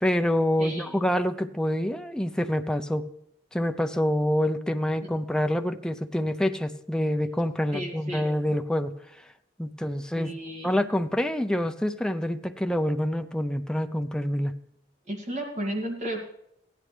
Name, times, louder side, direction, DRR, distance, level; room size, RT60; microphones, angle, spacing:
voice 1, 0.0-3.1 3.5-8.9 9.6-10.3 10.6-14.5, equal, 5° left, 7 dB, 0.6 m, -26 dB
voice 2, 0.6-1.0 7.7-8.2 10.1-10.8 15.1-16.3, right 1 dB, 40° right, 0 dB, 2.2 m, -33 dB
16.0 x 11.0 x 3.3 m, 0.76 s
head